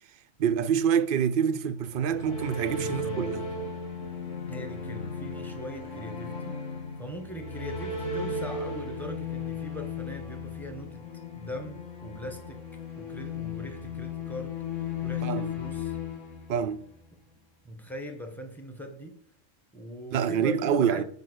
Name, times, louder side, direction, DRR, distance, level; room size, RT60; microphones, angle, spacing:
voice 1, 0.4-3.5 15.2-15.5 16.5-16.9 20.1-21.0, right 7 dB, 60° right, 0.6 m, -26 dB
sound 1, 1.8-17.0, left 4 dB, 75° left, 2.0 m, -36 dB
voice 2, 2.7-3.3 4.5-6.6 7.0-11.0 11.3-12.6 12.9-16.0 17.6-19.1 19.7-21.0, equal, ahead, 1.4 m, -41 dB
7.9 x 5.4 x 6.3 m
omnidirectional pair, 1.3 m